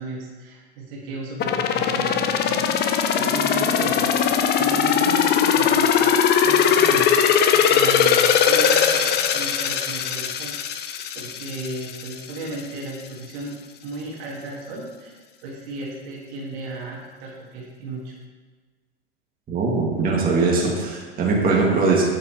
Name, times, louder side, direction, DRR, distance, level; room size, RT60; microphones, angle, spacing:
voice 1, 0.0-2.6 3.2-5.9 6.4-7.1 7.5-10.5 11.1-13.6 13.8-18.1, right 2 dB, 60° right, -3 dB, 1.9 m, -34 dB
sound 1, 1.4-12.1 12.5-12.6, left 8 dB, 30° left, 0.6 m, -20 dB
voice 2, 19.5-22.0, right 3 dB, 25° right, -3 dB, 2.1 m, -21 dB
8.3 x 7.5 x 3.0 m, 1.4 s
hypercardioid pair, 105°, 32 cm